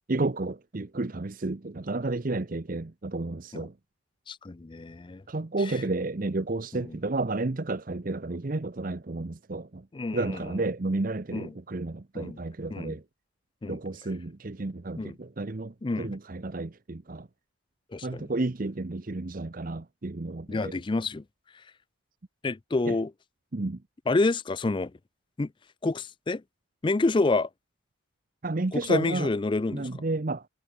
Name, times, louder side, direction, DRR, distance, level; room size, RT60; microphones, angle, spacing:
voice 1, 0.1-3.7 5.3-9.8 10.1-13.0 13.7-17.3 18.0-20.8 22.9-23.0 23.5-23.8 28.4-29.3 29.7-30.4, right 2 dB, 40° right, 0.7 m, -31 dB
voice 2, 4.3-5.2 5.6-5.8 6.7-7.0 9.9-10.6 11.3-11.5 12.1-12.4 12.7-13.0 13.6-13.8 15.0-15.2 15.8-16.1 17.9-18.3 20.5-21.2 22.4-23.1 24.1-24.9 25.4-25.5 25.8-26.4 26.8-27.5 28.7-30.0, left 3 dB, 25° left, 0.4 m, -28 dB
head